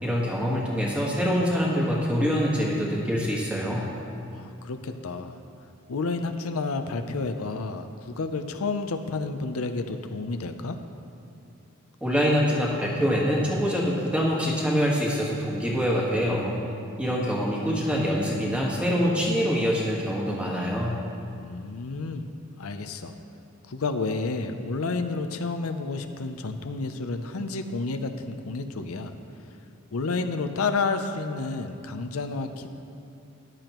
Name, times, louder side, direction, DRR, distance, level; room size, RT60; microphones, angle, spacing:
voice 1, 0.0-3.9 12.0-16.6 17.0-21.0, equal, 5° right, -3 dB, 1.4 m, -25 dB
voice 2, 4.3-5.4 5.9-10.8 21.4-22.2 22.6-23.1 23.7-29.1 29.5-29.6 29.9-32.7, left 3 dB, 90° left, 7 dB, 0.6 m, -30 dB
14.0 x 10.5 x 3.0 m, 2.5 s
head